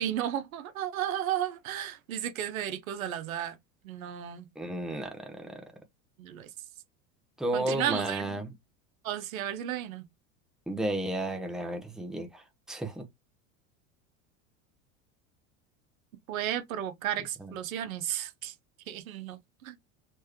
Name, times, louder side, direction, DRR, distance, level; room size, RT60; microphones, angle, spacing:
voice 1, 0.0-3.5 3.8-4.5 6.2-6.5 7.5-8.4 9.0-10.1 16.3-18.5 18.9-19.8, right 11 dB, 90° right, 0.9 m, -33 dB
voice 2, 4.5-5.6 7.4-8.5 10.7-13.0 17.4-17.5, right 1 dB, ahead, 1.0 m, -33 dB
4.6 x 3.2 x 3.0 m
hypercardioid pair, 105°, 40 cm